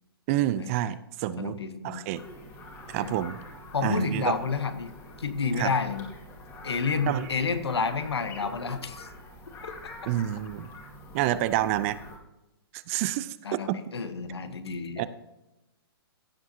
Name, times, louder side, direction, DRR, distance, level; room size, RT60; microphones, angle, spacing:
voice 1, 0.3-2.2 2.9-3.4 3.8-4.4 5.6-5.7 7.1-7.3 10.1-10.7 11.1-12.0 12.7-13.4 13.7-13.8 15.0-15.1, right 13 dB, 35° right, 15 dB, 0.6 m, -28 dB
voice 2, 1.4-2.0 3.0-3.2 3.7-4.9 5.2-6.1 6.6-9.1 9.6-9.7 13.4-15.1, left 5 dB, 85° left, 10 dB, 1.3 m, -30 dB
sound 1, 2.1-12.2, left 1 dB, 20° left, 2.1 m, -45 dB
16.0 x 7.2 x 2.8 m, 0.95 s
hypercardioid pair, 135°, 13 cm